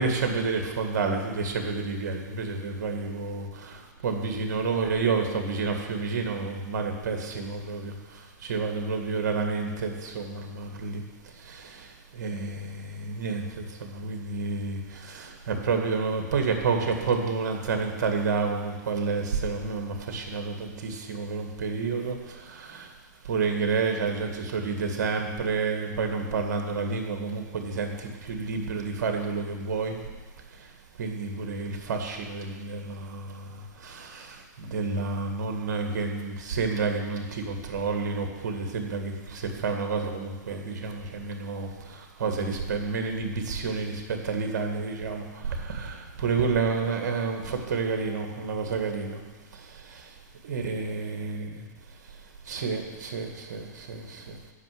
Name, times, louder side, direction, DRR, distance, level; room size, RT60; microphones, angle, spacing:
voice 1, 0.0-11.0 11.4-22.9 23.2-30.0 30.6-30.7 31.0-49.2 49.5-50.1 50.4-51.6 52.5-54.4, right 4 dB, 65° right, 4 dB, 2.0 m, -30 dB
9.6 x 5.9 x 7.8 m, 1.3 s
hypercardioid pair, 125°, 10 cm